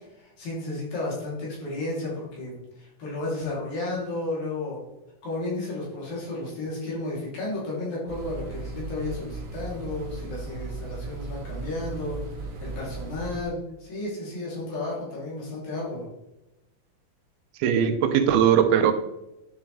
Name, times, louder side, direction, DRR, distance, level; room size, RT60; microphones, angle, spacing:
voice 1, 0.2-4.8 5.2-16.1, left 2 dB, 65° left, -5 dB, 5.0 m, -33 dB
sound 1, 8.1-13.4, right 3 dB, 55° right, 2.1 m, -37 dB
voice 2, 17.6-18.9, right 8 dB, 90° right, 8 dB, 2.8 m, -20 dB
11.0 x 7.0 x 3.4 m, 0.94 s
omnidirectional pair, 4.3 m